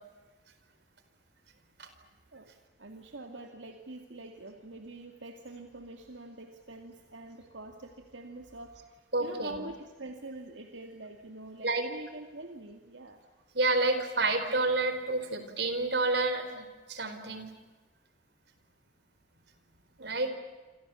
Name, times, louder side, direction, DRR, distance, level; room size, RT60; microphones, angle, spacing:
voice 1, 2.8-13.2 20.0-20.3, right 2 dB, 85° right, 4 dB, 2.4 m, -45 dB
voice 2, 9.1-9.6 11.6-11.8 13.5-17.5 20.0-20.3, right 2 dB, 65° right, 8 dB, 4.4 m, -29 dB
28.5 x 27.0 x 7.1 m, 1.2 s
head